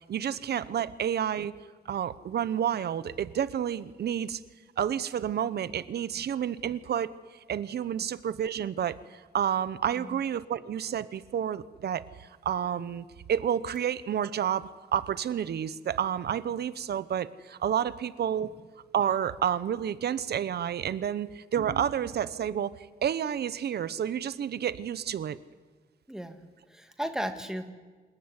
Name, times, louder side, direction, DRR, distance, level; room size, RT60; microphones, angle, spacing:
voice 1, 0.1-1.5 1.9-4.4 4.8-7.1 7.5-18.5 18.9-22.7 23.0-25.4, right 9 dB, 80° right, 16 dB, 0.9 m, -30 dB
voice 2, 26.1-27.7, equal, 5° right, 7 dB, 1.9 m, -36 dB
27.5 x 21.5 x 9.8 m, 1.4 s
wide cardioid pair, 180°, 17 cm